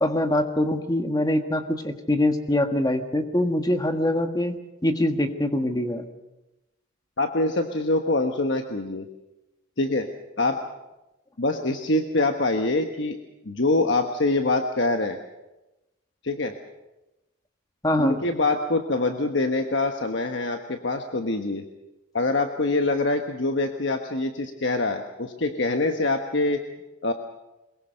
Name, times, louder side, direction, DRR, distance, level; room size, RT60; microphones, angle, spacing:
voice 1, 0.0-6.1 17.8-18.2, left 1 dB, 20° left, 7 dB, 1.5 m, -24 dB
voice 2, 7.2-9.1 9.8-10.1 10.4-10.6 11.4-13.2 13.4-15.2 16.2-16.5 18.0-21.6 22.1-26.6 27.0-27.1, left 2 dB, 60° left, 5 dB, 1.2 m, -24 dB
23.0 x 21.0 x 6.5 m, 0.99 s
head